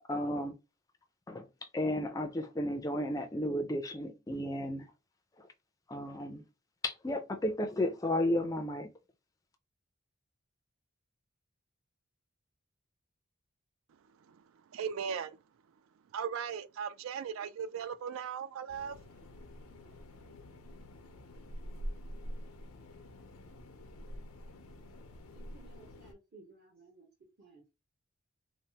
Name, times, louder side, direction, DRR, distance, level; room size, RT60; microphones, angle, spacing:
voice 1, 0.1-0.5 1.3-1.5 1.7-4.9 5.9-6.4 6.8-8.9, left 1 dB, 15° left, 0.3 m, -33 dB
voice 2, 14.7-15.4 16.1-18.9, right 7 dB, 75° right, 0.3 m, -37 dB
sound 1, 18.7-26.1, equal, 85° left, 0.5 m, -46 dB
voice 3, 25.3-27.1 27.4-27.7, right 3 dB, 50° right, 0.8 m, -58 dB
3.2 x 2.0 x 2.8 m
head